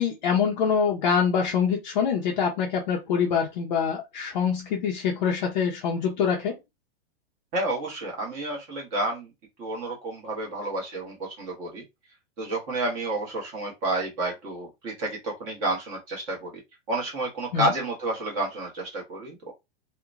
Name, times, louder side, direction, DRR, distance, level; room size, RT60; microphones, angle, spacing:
voice 1, 0.0-6.6 17.5-17.7, left 7 dB, 45° left, 0.6 m, -25 dB
voice 2, 7.5-9.3 9.6-11.8 12.4-16.6 16.9-19.5, right 2 dB, 25° right, 1.0 m, -30 dB
2.8 x 2.2 x 2.4 m
supercardioid pair, 160°, 32 cm